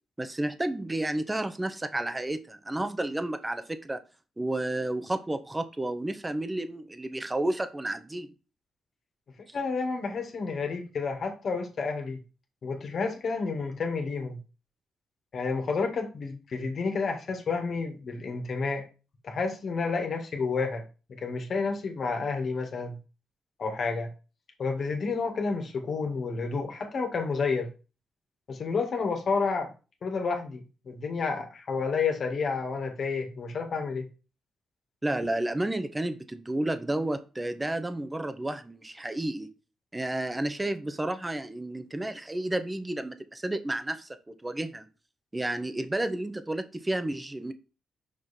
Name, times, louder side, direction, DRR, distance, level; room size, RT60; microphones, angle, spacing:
voice 1, 0.2-4.0 4.4-8.3 35.0-39.5 39.9-44.1 44.4-44.9 45.3-47.5, right 1 dB, 20° right, 10 dB, 1.1 m, -31 dB
voice 2, 9.5-12.2 12.6-14.4 15.3-18.8 19.2-20.8 21.1-23.0 23.6-24.1 24.6-27.7 28.5-29.7 30.0-34.0, left 4 dB, 60° left, 4 dB, 1.9 m, -30 dB
6.1 x 5.0 x 4.3 m, 0.33 s
supercardioid pair, 50°, 0 cm